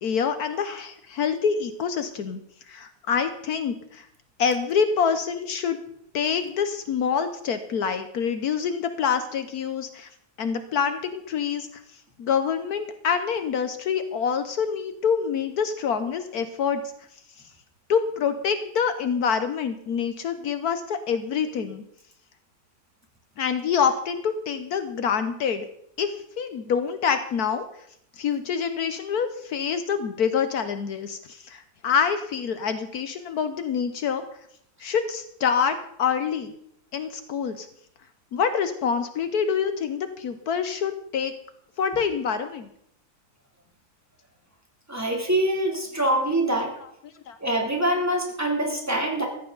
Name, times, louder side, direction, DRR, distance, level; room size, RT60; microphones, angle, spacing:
voice 1, 0.0-2.4 2.7-4.1 4.4-5.8 6.1-10.1 10.4-11.7 12.2-16.8 17.9-21.8 23.4-25.6 26.0-27.6 28.2-34.2 34.8-36.5 36.9-37.7 38.3-41.3 41.8-42.7 47.3-47.4, left 6 dB, 70° left, 10 dB, 1.4 m, -26 dB
voice 2, 44.9-46.7 47.4-49.3, right 1 dB, 10° right, 0 dB, 3.0 m, -24 dB
14.5 x 14.5 x 4.0 m, 0.72 s
omnidirectional pair, 1.7 m